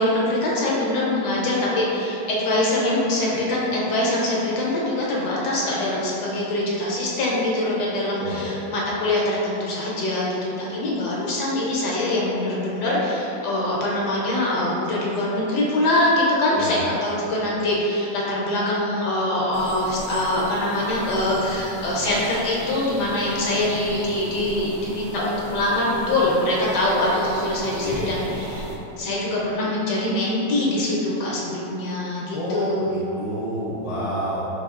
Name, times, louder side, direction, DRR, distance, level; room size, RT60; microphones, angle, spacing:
voice 1, 0.0-28.7 29.0-33.1, left 1 dB, 70° left, -5 dB, 1.2 m, -23 dB
voice 2, 8.2-8.5 16.5-16.8 27.8-28.1 32.3-34.4, equal, 35° left, -8 dB, 0.6 m, -29 dB
sound 1, 19.5-28.8, right 1 dB, 70° right, 1.1 m, -36 dB
4.0 x 3.4 x 2.4 m, 3.0 s
omnidirectional pair, 1.9 m